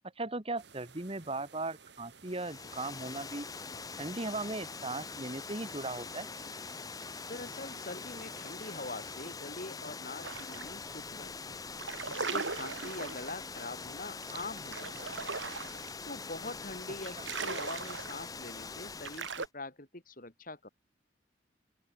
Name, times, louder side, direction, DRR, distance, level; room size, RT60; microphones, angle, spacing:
voice 1, 0.2-3.5 4.0-6.3 17.1-17.3, right 2 dB, 30° right, 1.6 m, -38 dB
sound 1, 0.6-9.3, right 5 dB, 65° right, 2.6 m, -56 dB
Water, 2.3-19.5, left 4 dB, 20° left, 0.6 m, -43 dB
voice 2, 7.2-11.6 12.1-15.2 16.1-20.7, left 2 dB, 50° left, 4.0 m, -44 dB
sound 2, 10.2-10.7 11.1-11.3 11.7-19.5, right 5 dB, 85° right, 2.1 m, -39 dB
open air
head